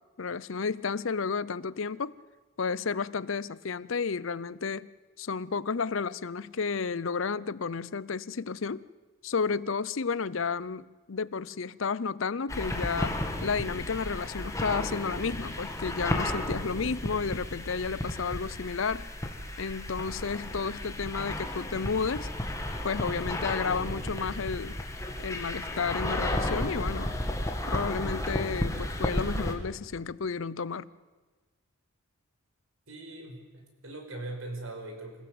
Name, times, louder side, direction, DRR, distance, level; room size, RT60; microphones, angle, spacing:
voice 1, 0.2-2.1 2.6-4.9 5.2-8.8 9.2-19.1 19.6-22.3 22.8-24.8 25.2-27.1 27.7-30.9, left 5 dB, 65° left, 19 dB, 0.6 m, -32 dB
sound 1, 12.5-29.5, left 1 dB, 15° left, 2.2 m, -33 dB
voice 2, 32.9-35.3, right 2 dB, 70° right, 3 dB, 5.1 m, -41 dB
27.0 x 16.5 x 8.0 m, 1.3 s
head